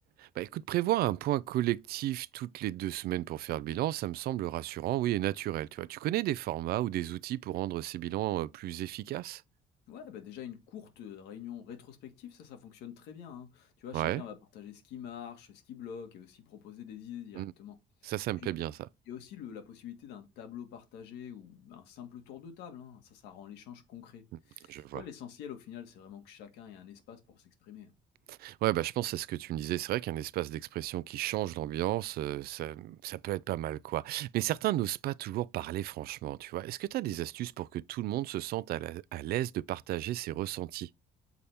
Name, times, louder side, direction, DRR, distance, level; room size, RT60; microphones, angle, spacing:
voice 1, 0.2-9.4 13.9-14.2 17.3-17.5 18.0-18.8 24.7-25.0 28.3-40.9, right 15 dB, 65° right, 0.4 m, -33 dB
voice 2, 9.9-17.8 18.0-18.5 19.1-27.9, left 9 dB, 90° left, 1.6 m, -46 dB
6.9 x 4.3 x 3.3 m
cardioid pair, 110°, 17 cm